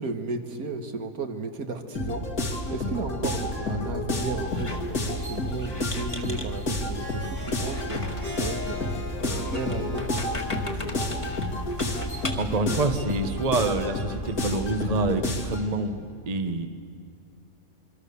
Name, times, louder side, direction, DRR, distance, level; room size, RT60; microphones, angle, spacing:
voice 1, 0.0-8.9 9.2-10.1 10.3-11.1, right 3 dB, 70° right, 6 dB, 1.9 m, -34 dB
sound 1, 1.9-15.7, left 1 dB, 65° left, 2.8 m, -30 dB
Squeak, 4.5-12.6, left 2 dB, 20° left, 1.8 m, -39 dB
Harp, 7.0-12.3, left 3 dB, 85° right, 4.5 m, -40 dB
voice 2, 12.4-16.7, right 2 dB, 30° right, 8 dB, 1.0 m, -27 dB
27.0 x 23.0 x 6.9 m, 2.3 s
omnidirectional pair, 1.6 m